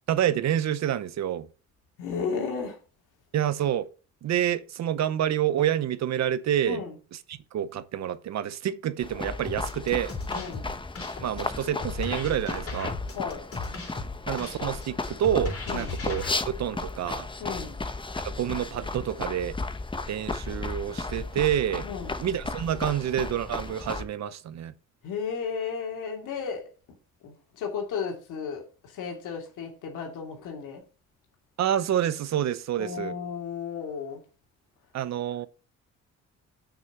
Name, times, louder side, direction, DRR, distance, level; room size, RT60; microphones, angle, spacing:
voice 1, 0.1-1.5 3.3-3.9 4.2-6.8 7.3-10.1 11.2-13.0 14.3-17.3 18.2-19.6 20.1-21.9 22.2-24.7 31.6-33.1 34.9-35.5, right 10 dB, 65° right, 0.8 m, -28 dB
voice 2, 2.0-2.8 6.7-6.9 10.3-10.8 13.1-13.5 15.7-15.9 17.4-17.9 21.8-22.2 25.0-26.7 27.2-30.8 32.8-34.2, left 6 dB, 85° left, 2.5 m, -34 dB
sound 1, 9.0-24.0, left 3 dB, 15° left, 0.9 m, -35 dB
sound 2, 9.5-16.3, left 4 dB, 45° left, 3.1 m, -37 dB
6.3 x 6.2 x 5.5 m
cardioid pair, 90°, 30 cm